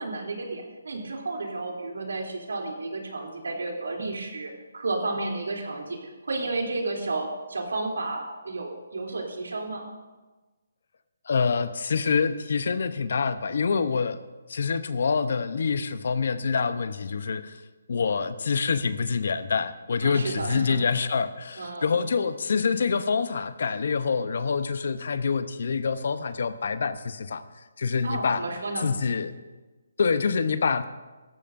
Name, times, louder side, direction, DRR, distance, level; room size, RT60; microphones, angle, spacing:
voice 1, 0.0-9.9 20.0-20.8 21.6-22.0 28.0-28.9, right 2 dB, 85° right, 1 dB, 3.2 m, -32 dB
voice 2, 11.3-14.2 14.5-17.6 17.9-27.4 27.8-28.4 28.8-29.3 30.0-30.8, left 5 dB, 60° left, 12 dB, 0.8 m, -26 dB
17.5 x 14.0 x 2.6 m, 1.2 s
hypercardioid pair, 165°, 0 cm